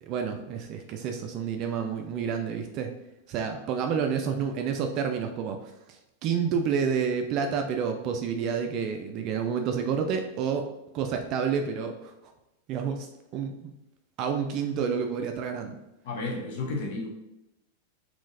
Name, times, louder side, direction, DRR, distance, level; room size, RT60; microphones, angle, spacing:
voice 1, 0.0-2.9 3.3-10.7 10.9-12.1 12.7-13.1 13.3-13.7 14.2-15.8, right 6 dB, 40° right, 4 dB, 0.3 m, -29 dB
voice 2, 16.0-17.1, left 3 dB, 50° left, 1 dB, 0.6 m, -32 dB
3.6 x 2.6 x 2.6 m, 0.93 s
figure-of-eight pair, 90°, 0 cm